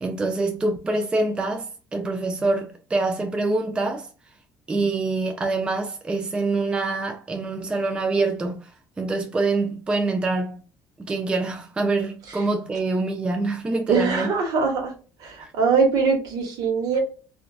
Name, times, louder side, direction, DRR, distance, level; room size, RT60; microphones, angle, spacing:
voice 1, 0.0-4.1 4.7-8.7 9.0-10.6 11.0-14.3, right 3 dB, 15° right, 0.3 m, -25 dB
voice 2, 13.9-14.9 15.2-17.0, right 5 dB, 60° right, 0.9 m, -22 dB
2.4 x 2.3 x 2.2 m
cardioid pair, 130°, 7 cm